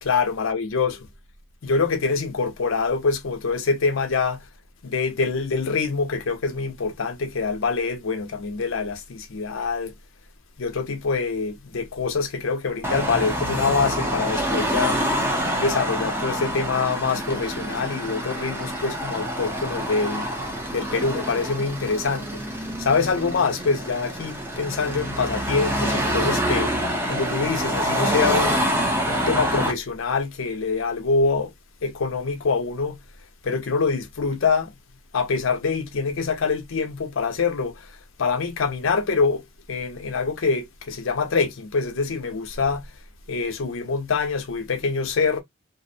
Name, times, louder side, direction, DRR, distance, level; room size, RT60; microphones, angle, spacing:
voice 1, 0.0-1.0 1.6-4.4 4.8-9.9 10.6-15.0 15.6-20.3 20.7-26.7 27.1-28.8 29.1-31.5 31.8-33.0 33.4-34.7 35.1-37.9 38.2-42.9 43.3-45.4, left 4 dB, 80° left, 0.6 m, -25 dB
Car passing by / Traffic noise roadway noise / Engine, 12.8-29.7, equal, 10° right, 0.5 m, -26 dB
2.6 x 2.0 x 2.6 m
head